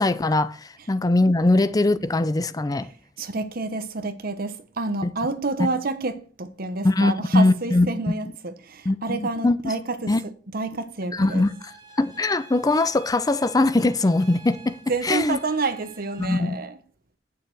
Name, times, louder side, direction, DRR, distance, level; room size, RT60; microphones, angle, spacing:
voice 1, 0.0-2.9 5.0-5.1 6.8-7.9 8.9-9.6 10.1-10.2 11.1-11.7 12.0-14.8 15.0-15.4 16.2-16.6, left 2 dB, 20° left, 0.5 m, -21 dB
voice 2, 3.2-10.1 10.5-11.5 14.9-16.8, right 3 dB, 55° right, 1.1 m, -29 dB
sound 1, 11.2-16.3, right 4 dB, 25° right, 2.4 m, -49 dB
9.0 x 6.6 x 4.7 m
head